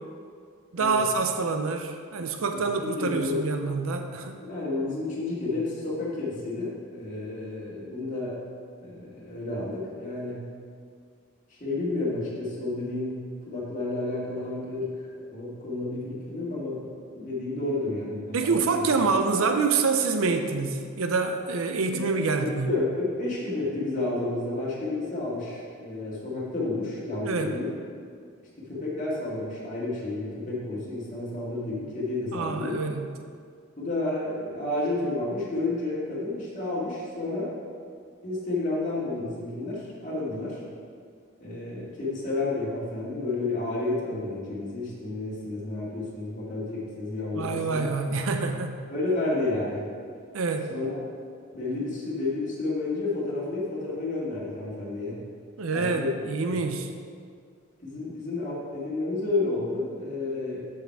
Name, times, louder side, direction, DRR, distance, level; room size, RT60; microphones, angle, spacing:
voice 1, 0.7-4.4 18.3-22.7 27.2-27.5 32.3-33.1 47.3-48.8 50.3-50.7 55.6-56.9, right 4 dB, 80° right, 6 dB, 0.5 m, -26 dB
voice 2, 3.0-3.4 4.4-8.4 8.8-10.4 11.5-19.0 21.9-22.1 22.4-27.8 28.6-32.8 33.8-37.5 38.2-40.6 41.4-47.9 48.9-49.8 50.7-51.0 51.5-55.2 55.7-56.1 56.5-56.6 57.8-60.6, left 2 dB, 35° left, -7 dB, 2.0 m, -31 dB
7.2 x 6.2 x 4.7 m, 2.1 s
head